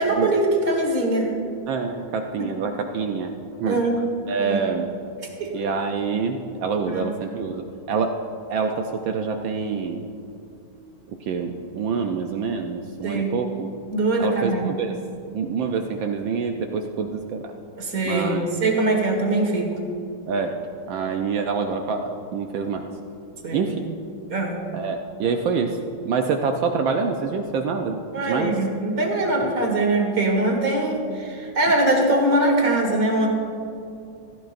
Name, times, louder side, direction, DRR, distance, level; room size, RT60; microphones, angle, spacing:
voice 1, 0.0-1.3 2.4-2.5 3.7-3.9 4.4-4.6 5.4-5.6 6.9-7.1 13.0-13.3 13.9-14.7 17.8-19.8 23.4-23.7 24.3-24.6 28.1-33.3, right 2 dB, 45° right, 1 dB, 2.0 m, -22 dB
voice 2, 1.7-3.3 3.6-3.8 4.3-4.9 5.5-8.2 8.5-10.0 11.2-13.7 14.2-15.0 15.3-17.5 18.0-18.5 20.3-20.6 20.9-22.9 23.5-23.9 24.7-25.8 26.0-28.0 28.2-28.6 29.4-29.5, right 5 dB, 75° right, 4 dB, 1.3 m, -26 dB
15.5 x 14.0 x 2.5 m, 2.6 s
omnidirectional pair, 2.3 m